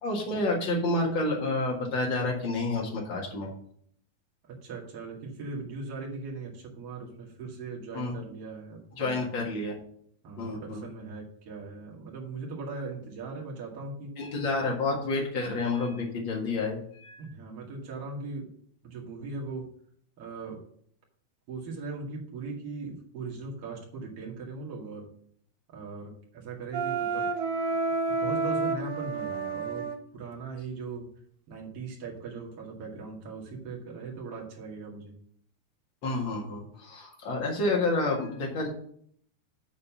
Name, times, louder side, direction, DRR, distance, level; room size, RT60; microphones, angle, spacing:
voice 1, 0.0-3.5 7.9-8.1 9.0-9.8 10.4-10.8 14.2-17.2 36.0-38.7, left 2 dB, 70° left, -1 dB, 1.1 m, -29 dB
voice 2, 4.4-9.4 10.2-14.1 17.2-18.5 18.8-19.7 20.2-20.6 21.5-25.1 25.7-27.3 28.1-31.1 31.5-35.1, right 4 dB, 40° right, -3 dB, 2.5 m, -39 dB
Wind instrument woodwind instrument, 26.7-30.0, right 3 dB, 70° right, 2.5 m, -29 dB
9.2 x 4.2 x 7.1 m, 0.63 s
omnidirectional pair, 5.1 m